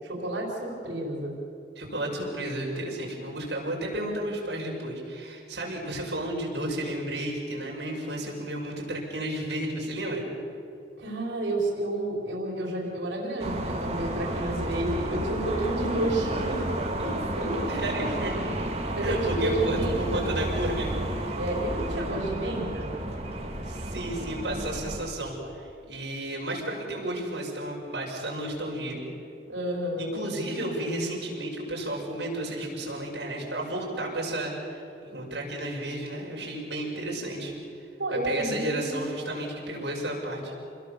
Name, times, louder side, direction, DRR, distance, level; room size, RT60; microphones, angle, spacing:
voice 1, 0.0-1.3 11.0-16.7 17.0-18.2 18.9-20.3 21.4-22.9 29.5-30.1 38.0-39.1, right 1 dB, 90° right, -1 dB, 5.1 m, -30 dB
voice 2, 1.8-10.2 17.7-18.3 19.0-20.9 23.6-29.0 30.0-37.5 38.2-40.5, right 1 dB, 75° right, -2 dB, 6.2 m, -32 dB
sound 1, 13.4-25.1, right 1 dB, 35° right, 2.8 m, -31 dB
28.0 x 21.0 x 7.1 m, 2.7 s
head